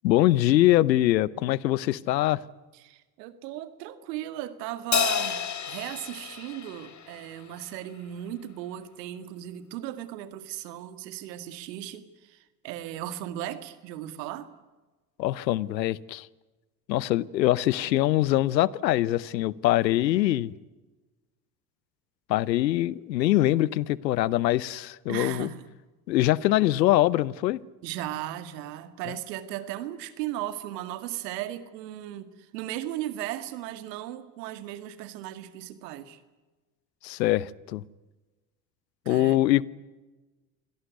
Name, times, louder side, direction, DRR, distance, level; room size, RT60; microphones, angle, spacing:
voice 1, 0.0-2.4 15.2-16.3 16.9-20.5 22.3-25.5 26.1-27.6 37.0-37.8 39.1-39.7, left 15 dB, 85° left, 0.9 m, -23 dB
voice 2, 2.7-14.5 25.1-25.7 27.8-36.2 39.1-39.4, right 13 dB, 75° right, 2.1 m, -36 dB
Crash cymbal, 4.9-7.6, left 8 dB, 35° left, 1.9 m, -30 dB
25.5 x 17.5 x 9.5 m
hypercardioid pair, 65°, 49 cm